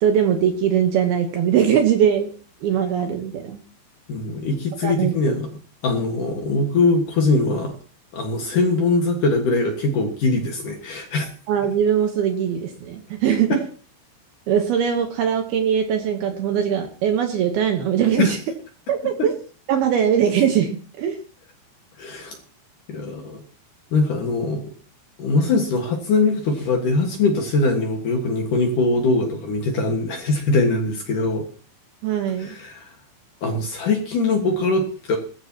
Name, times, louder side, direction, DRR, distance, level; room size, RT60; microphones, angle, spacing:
voice 1, 0.0-2.3 2.6-3.6 4.8-5.4 11.5-13.6 14.5-18.4 18.9-19.3 19.7-21.2 32.0-32.5, right 8 dB, 70° right, 5 dB, 2.6 m, -21 dB
voice 2, 4.1-5.5 5.8-7.7 8.1-11.3 13.5-13.6 18.2-18.3 22.0-22.4 22.9-23.4 23.9-24.6 25.2-31.4 32.4-32.9 33.4-35.2, left 3 dB, 55° left, 2 dB, 2.6 m, -22 dB
20.0 x 14.5 x 3.0 m, 0.40 s
omnidirectional pair, 5.5 m